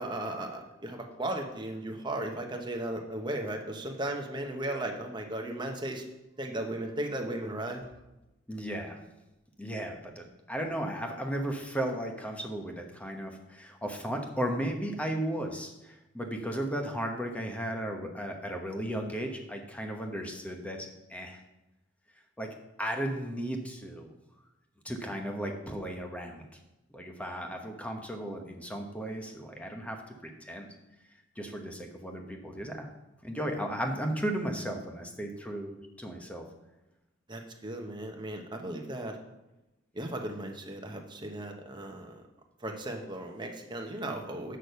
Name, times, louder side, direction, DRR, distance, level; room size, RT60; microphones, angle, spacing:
voice 1, 0.0-6.1 6.4-7.9 37.3-39.2 39.9-42.2 42.6-44.6, right 1 dB, 25° right, 3 dB, 1.1 m, -36 dB
voice 2, 8.5-9.0 9.6-21.4 22.4-22.5 22.8-24.1 24.8-26.5 26.9-30.7 31.4-32.9 33.2-36.4, right 1 dB, 5° left, 3 dB, 1.0 m, -35 dB
6.5 x 6.2 x 6.8 m, 0.98 s
head